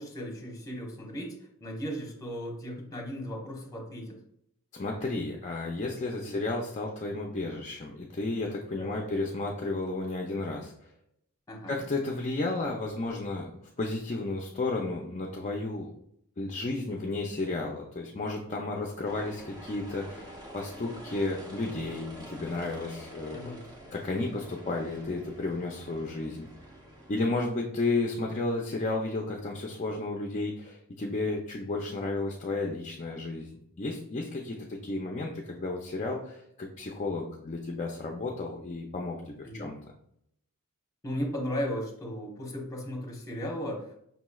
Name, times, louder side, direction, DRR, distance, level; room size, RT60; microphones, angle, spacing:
voice 1, 0.0-1.3 1.6-4.2 6.2-6.4 8.7-9.1 11.5-11.8 23.3-23.6 39.4-39.7 41.0-43.9, equal, 15° left, -2 dB, 1.0 m, -36 dB
voice 2, 4.7-10.9 11.7-13.5 13.8-15.9 16.4-23.5 23.9-26.5 27.1-33.5 33.8-39.8, left 2 dB, 30° left, 0 dB, 0.4 m, -33 dB
sound 1, 19.0-27.4, right 1 dB, 15° right, 0.6 m, -47 dB
5.5 x 3.0 x 2.3 m, 0.72 s
head